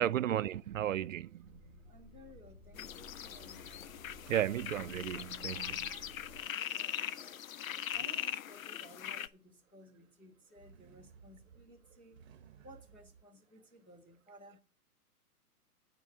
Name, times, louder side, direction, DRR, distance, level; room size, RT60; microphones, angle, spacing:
voice 1, 0.0-1.6 4.3-6.1, right 11 dB, 60° right, 0.5 m, -34 dB
sound 1, 1.4-6.4, equal, 30° left, 5.3 m, -56 dB
voice 2, 1.9-3.9 6.5-7.4 7.9-12.2 12.6-14.6, equal, 10° left, 0.4 m, -57 dB
sound 2, 2.8-9.3, left 10 dB, 60° left, 0.7 m, -40 dB
sound 3, 10.3-13.2, right 7 dB, 40° right, 0.9 m, -59 dB
9.6 x 4.7 x 7.5 m
hypercardioid pair, 135°, 46 cm